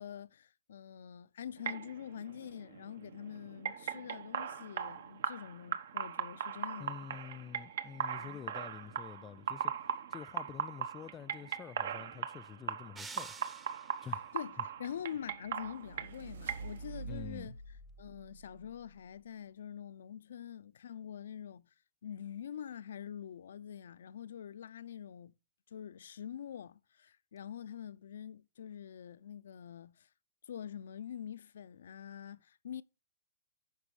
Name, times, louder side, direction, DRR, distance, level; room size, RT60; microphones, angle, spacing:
voice 1, 0.0-7.2 8.2-8.4 14.3-17.6 18.0-21.6 22.0-25.3 25.7-30.1 30.5-32.8, left 9 dB, 70° left, 0.5 m, -45 dB
sound 1, 1.6-17.0, right 8 dB, 65° right, 1.1 m, -40 dB
voice 2, 6.8-9.7 10.1-13.3 14.0-14.3 17.1-17.6, left 8 dB, 20° left, 0.4 m, -47 dB
sound 2, 13.0-14.2, right 4 dB, 10° right, 0.8 m, -49 dB
sound 3, 14.9-19.2, right 4 dB, 85° right, 2.6 m, -48 dB
10.0 x 6.0 x 4.8 m
hypercardioid pair, 140°, 0 cm